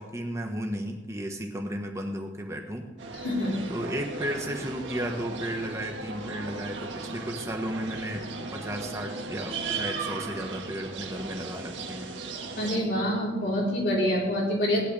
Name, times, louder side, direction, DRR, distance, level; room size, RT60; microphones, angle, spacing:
voice 1, 0.0-2.9 3.7-12.1, equal, 15° right, 2 dB, 1.4 m, -34 dB
sound 1, 3.0-12.8, right 3 dB, 85° right, 1.8 m, -37 dB
voice 2, 3.2-3.6 12.6-14.8, equal, 60° left, -4 dB, 4.3 m, -26 dB
16.5 x 11.0 x 3.5 m, 1.2 s
head